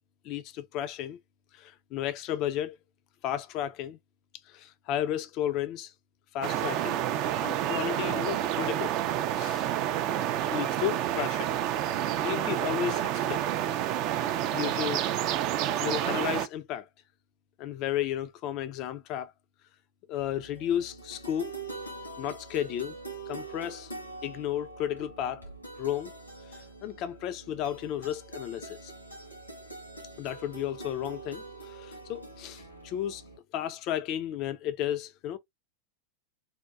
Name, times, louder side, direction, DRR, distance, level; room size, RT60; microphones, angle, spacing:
voice 1, 0.2-1.2 1.5-2.8 3.2-4.0 4.5-5.9 6.3-7.0 7.4-8.9 9.3-9.7 10.5-11.5 12.2-13.0 13.3-13.4 14.1-15.1 15.8-16.9 17.6-19.3 20.1-21.5 22.2-23.0 23.3-23.9 24.2-25.5 25.8-26.1 26.5-28.9 30.2-33.2 33.5-35.4, left 11 dB, 40° left, 0.3 m, -33 dB
sound 1, 6.4-16.5, right 11 dB, 40° right, 0.3 m, -29 dB
sound 2, 20.2-33.4, right 3 dB, 90° left, 1.5 m, -44 dB
3.5 x 2.2 x 2.3 m
figure-of-eight pair, 90°, 0 cm